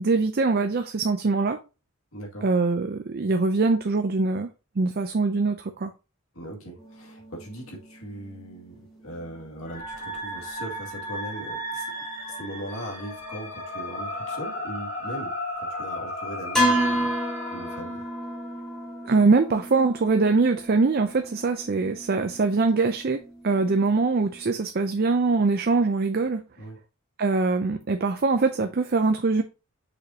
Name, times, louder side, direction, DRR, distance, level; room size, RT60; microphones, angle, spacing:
voice 1, 0.0-1.6 2.4-5.9 19.0-26.4 27.2-29.4, right 3 dB, 45° right, 0.5 m, -23 dB
voice 2, 2.1-2.5 6.3-11.9 12.3-18.0 26.6-26.8, right 1 dB, 70° left, 2.2 m, -39 dB
sound 1, 6.8-13.7 14.2-14.4 16.5-24.6, equal, 5° left, 2.0 m, -33 dB
sound 2, 9.6-17.8, left 1 dB, 40° left, 2.9 m, -35 dB
6.2 x 5.5 x 2.8 m
head